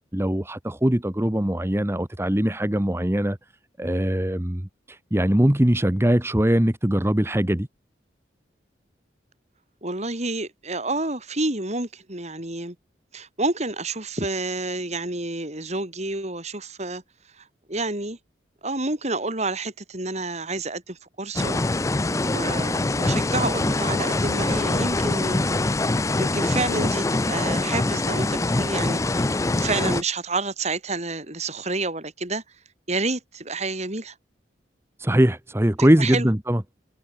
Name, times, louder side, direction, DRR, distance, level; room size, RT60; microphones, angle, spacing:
voice 1, 0.1-3.4 3.8-7.7 35.0-36.6, right 1 dB, 15° right, 1.1 m, -21 dB
voice 2, 9.8-12.7 13.1-17.0 17.4-18.2 18.6-21.6 22.3-25.4 26.2-32.4 32.9-34.1 36.0-36.3, right 2 dB, 40° right, 5.1 m, -29 dB
sound 1, 21.4-30.0, left 2 dB, 15° left, 0.5 m, -24 dB
head